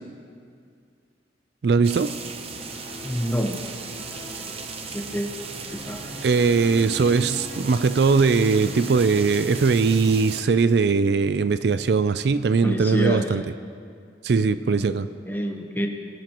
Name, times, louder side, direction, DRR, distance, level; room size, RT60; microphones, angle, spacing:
voice 1, 1.6-2.2 6.2-13.4 14.2-15.1, right 4 dB, 60° right, 0.4 m, -20 dB
sound 1, 1.8-10.4, right 4 dB, 35° right, 0.7 m, -37 dB
sound 2, 2.5-11.3, equal, 90° right, 3.9 m, -42 dB
voice 2, 3.0-3.6 4.9-5.3 5.8-6.2 12.6-13.3 14.7-14.9 15.3-15.9, equal, 10° left, 0.9 m, -27 dB
22.5 x 11.0 x 3.0 m
head